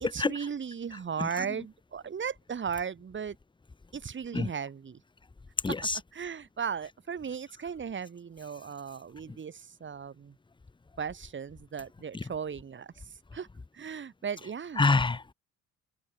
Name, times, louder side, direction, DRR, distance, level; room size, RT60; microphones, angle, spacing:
voice 1, 0.0-3.4 3.9-5.0 5.7-5.8 6.1-10.3 11.0-12.9 13.3-13.5 13.7-14.8, right 7 dB, 40° right, 2.2 m, -36 dB
voice 2, 5.6-6.0 14.8-15.3, left 3 dB, 15° left, 0.9 m, -25 dB
open air
cardioid pair, 90°, 30 cm